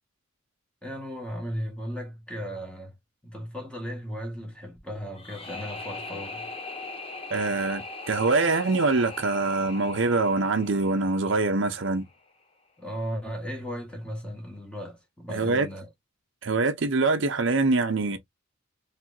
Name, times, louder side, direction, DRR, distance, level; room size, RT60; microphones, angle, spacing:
voice 1, 0.8-2.9 3.2-6.5 12.8-15.9, equal, 5° left, 1.8 m, -36 dB
sound 1, 5.1-12.1, left 3 dB, 30° left, 1.2 m, -40 dB
voice 2, 7.3-12.1 15.3-15.7 16.4-18.2, right 3 dB, 65° right, 0.7 m, -24 dB
4.6 x 3.3 x 2.7 m
head